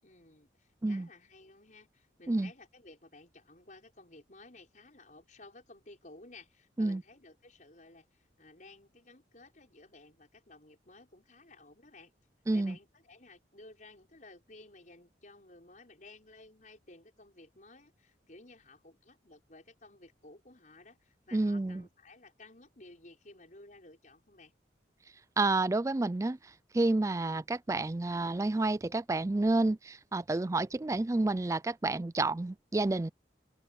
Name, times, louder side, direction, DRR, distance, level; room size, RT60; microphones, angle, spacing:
voice 1, 0.0-12.1 12.5-24.5, left 2 dB, 45° left, 5.8 m, -55 dB
voice 2, 21.3-21.8 25.4-33.1, right 2 dB, 15° right, 0.4 m, -30 dB
open air
head